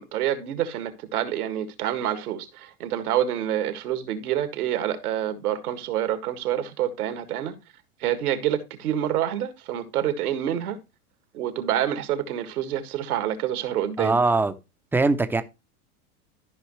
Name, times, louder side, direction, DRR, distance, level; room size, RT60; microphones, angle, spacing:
voice 1, 0.0-7.5 8.0-10.8 11.3-14.2, right 11 dB, 75° right, 1.9 m, -27 dB
voice 2, 14.0-14.5 14.9-15.4, right 3 dB, 5° right, 0.6 m, -21 dB
13.5 x 5.4 x 3.1 m
hypercardioid pair, 115°, 44 cm